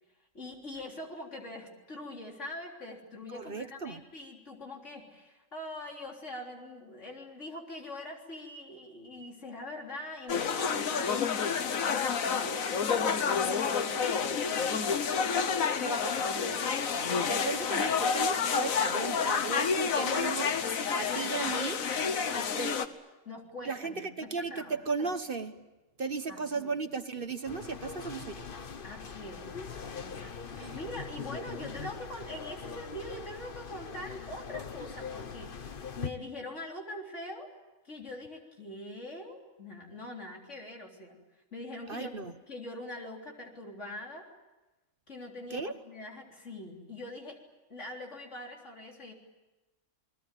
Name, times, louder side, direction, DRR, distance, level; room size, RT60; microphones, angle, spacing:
voice 1, 0.3-15.1 17.4-17.6 19.3-21.2 22.0-22.7 23.3-24.8 26.3-26.8 28.8-29.5 30.0-37.5 37.8-41.2 41.5-42.2 42.5-44.3 45.1-47.4 47.7-49.1, left 1 dB, 60° left, 0 dB, 4.1 m, -43 dB
voice 2, 3.3-4.0 15.8-20.5 21.0-21.8 22.6-22.8 23.7-25.6 26.0-28.4 30.6-30.7 41.9-42.3 45.5-45.7, right 4 dB, 45° right, 9 dB, 1.2 m, -36 dB
sound 1, 10.3-22.9, left 6 dB, 85° left, 1.6 m, -29 dB
sound 2, 27.4-36.1, left 5 dB, 45° left, 1.2 m, -42 dB
28.5 x 20.5 x 9.1 m, 1.1 s
omnidirectional pair, 1.4 m